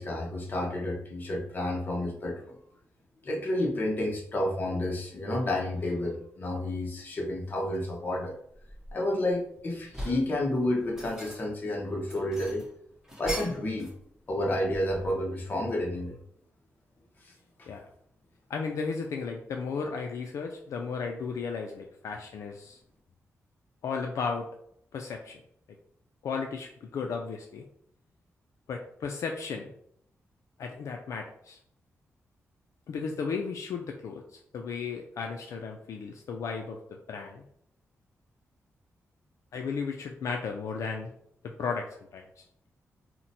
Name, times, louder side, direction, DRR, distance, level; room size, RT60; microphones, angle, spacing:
voice 1, 0.0-2.4 3.2-8.4 8.9-12.7 13.2-13.9 14.3-16.1, left 1 dB, 35° left, -1 dB, 0.8 m, -30 dB
sound 1, 7.6-7.8 8.3-9.3 9.7-10.3 10.8-11.6 12.0-14.0 14.3-15.3, equal, 10° right, 0.9 m, -41 dB
voice 2, 18.5-22.8 23.8-24.5 24.9-25.4 26.2-27.6 28.7-29.7 30.6-31.6 32.9-37.4 39.5-41.1 41.4-42.4, left 5 dB, 75° left, 2 dB, 0.3 m, -35 dB
2.9 x 2.1 x 3.9 m, 0.71 s
wide cardioid pair, 140°, 5 cm